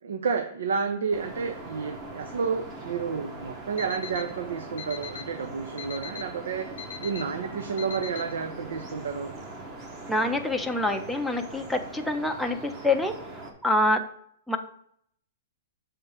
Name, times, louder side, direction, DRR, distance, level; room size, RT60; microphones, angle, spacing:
voice 1, 0.0-6.7 7.0-9.3, right 5 dB, 85° right, 7 dB, 0.7 m, -30 dB
sound 1, 1.1-13.5, right 2 dB, 20° right, 0.9 m, -41 dB
Alarm, 3.8-4.2 4.8-5.2 5.8-6.2 6.8-7.2 7.8-8.2, left 9 dB, 65° left, 0.7 m, -38 dB
voice 2, 10.1-13.1 13.6-14.0 14.5-14.6, left 2 dB, ahead, 2 dB, 0.4 m, -26 dB
7.0 x 3.7 x 5.6 m, 0.66 s
hypercardioid pair, 175°, 0 cm